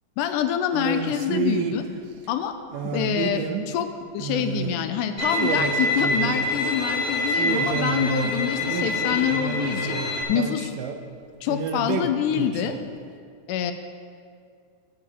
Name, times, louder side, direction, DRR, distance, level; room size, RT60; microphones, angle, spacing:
voice 1, 0.2-1.9 2.3-2.6 2.8-3.9 4.1-10.0 10.3-10.7 11.4-12.8 13.5-13.7, left 9 dB, 80° left, 8 dB, 2.0 m, -26 dB
sound 1, 0.7-1.8 2.7-3.8 4.2-4.8 5.1-5.2 5.3-6.6 7.3-11.0 11.5-12.8, right 6 dB, 90° right, 2.3 m, -30 dB
Bowed string instrument, 5.2-10.2, left 1 dB, 15° left, 2.2 m, -26 dB
14.5 x 7.7 x 3.8 m, 2.2 s
omnidirectional pair, 3.7 m